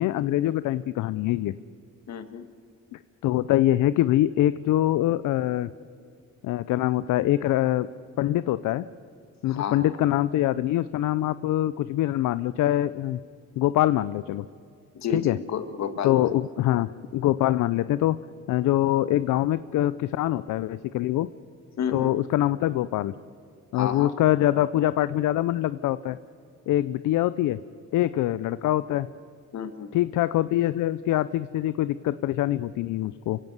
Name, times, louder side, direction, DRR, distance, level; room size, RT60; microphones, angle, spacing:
voice 1, 0.0-1.5 2.9-5.7 6.4-7.9 8.2-8.9 9.4-13.2 13.6-14.5 15.1-15.4 16.0-18.2 18.5-21.3 21.9-23.1 23.7-26.2 26.7-27.6 27.9-29.1 29.9-33.4, left 14 dB, 80° left, 15 dB, 0.6 m, -24 dB
voice 2, 2.1-2.5 9.5-9.8 14.9-16.3 21.8-22.1 23.7-24.1 29.5-29.9, left 7 dB, 65° left, 9 dB, 1.9 m, -31 dB
28.0 x 16.5 x 8.1 m, 2.4 s
cardioid pair, 90°, 30 cm